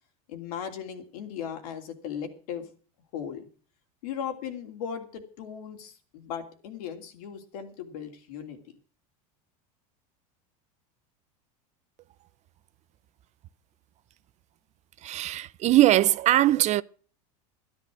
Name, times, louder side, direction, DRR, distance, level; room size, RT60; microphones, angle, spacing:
voice 1, 0.3-2.7 3.1-3.5 4.0-8.8, left 8 dB, 75° left, 3.0 m, -37 dB
voice 2, 15.0-16.8, right 14 dB, 40° right, 0.5 m, -21 dB
12.5 x 10.5 x 6.2 m
supercardioid pair, 115°, 19 cm